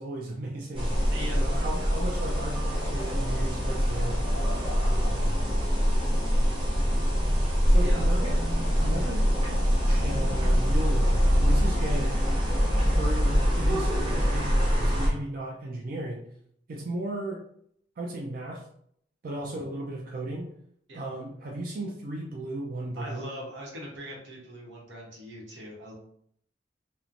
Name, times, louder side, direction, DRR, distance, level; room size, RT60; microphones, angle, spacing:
voice 1, 0.0-1.1 1.4-4.2 7.7-8.4 8.8-9.3 9.9-12.2 13.0-16.3 16.7-17.4 18.0-18.6 19.2-20.5 20.9-23.2, right 1 dB, 55° right, -2 dB, 0.4 m, -35 dB
sound 1, 0.7-15.1, equal, 30° right, 0.9 m, -24 dB
voice 2, 1.1-1.7 7.8-8.4 19.3-19.4 20.9-21.0 23.0-25.9, equal, 90° right, -2 dB, 0.9 m, -41 dB
3.0 x 2.1 x 2.5 m, 0.67 s
head